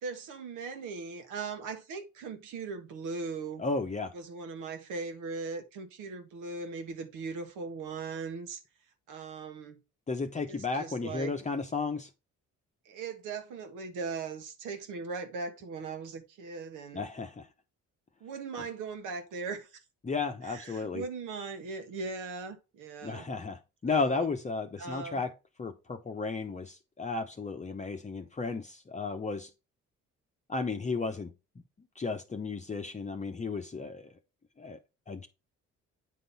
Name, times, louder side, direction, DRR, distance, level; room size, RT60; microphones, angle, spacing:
voice 1, 0.0-3.6 4.1-8.6 9.1-9.8 10.5-11.3 12.8-17.1 18.2-19.8 20.4-23.3 23.9-24.3 24.8-25.2, right 4 dB, 90° right, 1.5 m, -39 dB
voice 2, 3.6-4.1 10.1-12.1 16.9-17.5 20.0-21.0 23.0-25.3 25.6-29.5 30.5-31.3 32.0-34.1 34.6-34.8 35.1-35.3, left 4 dB, 25° left, 0.8 m, -34 dB
9.1 x 3.8 x 4.0 m
cardioid pair, 90°, 30 cm